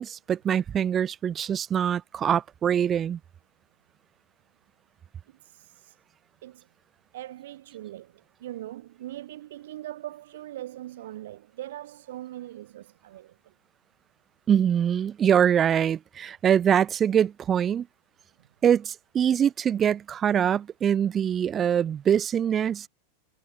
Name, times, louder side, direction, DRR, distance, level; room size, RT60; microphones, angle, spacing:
voice 1, 0.0-3.2 14.5-17.9 18.6-22.9, right 9 dB, 25° right, 0.3 m, -24 dB
voice 2, 5.3-6.0 6.4-6.7 7.1-13.5 18.4-18.5, right 14 dB, 75° right, 5.2 m, -41 dB
supercardioid pair, 145°, 0 cm